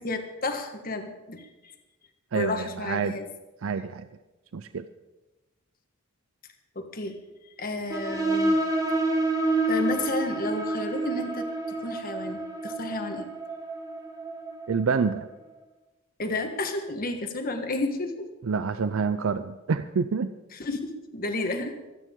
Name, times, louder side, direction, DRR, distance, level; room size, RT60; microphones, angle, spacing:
voice 1, 0.0-1.7 2.3-3.3 6.7-7.2 7.6-8.6 9.7-11.5 11.8-13.3 16.2-18.1 20.5-21.8, left 2 dB, 45° left, 5 dB, 1.5 m, -31 dB
voice 2, 2.3-3.1 3.6-4.1 4.5-4.9 14.7-15.3 18.4-20.3, right 5 dB, 70° right, 11 dB, 0.5 m, -27 dB
sound 1, 7.9-15.2, right 2 dB, 15° right, 1.5 m, -28 dB
26.0 x 9.2 x 3.7 m, 1.1 s
head